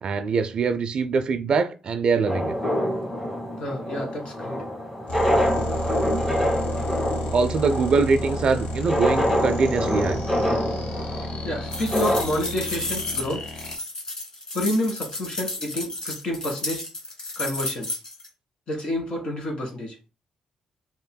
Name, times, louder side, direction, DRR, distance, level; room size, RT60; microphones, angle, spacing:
voice 1, 0.0-2.5 7.3-10.2, right 4 dB, 50° right, 0.4 m, -23 dB
sound 1, 2.3-12.2, equal, 5° left, 1.3 m, -26 dB
voice 2, 3.6-4.6 11.4-13.4 14.5-16.8 17.3-17.9 18.7-20.0, left 1 dB, 50° left, 1.7 m, -29 dB
sound 2, 5.1-13.8, equal, 75° left, 1.1 m, -32 dB
sound 3, 11.7-18.3, left 2 dB, 35° left, 1.6 m, -32 dB
5.2 x 2.9 x 2.2 m
cardioid pair, 140°, 2 cm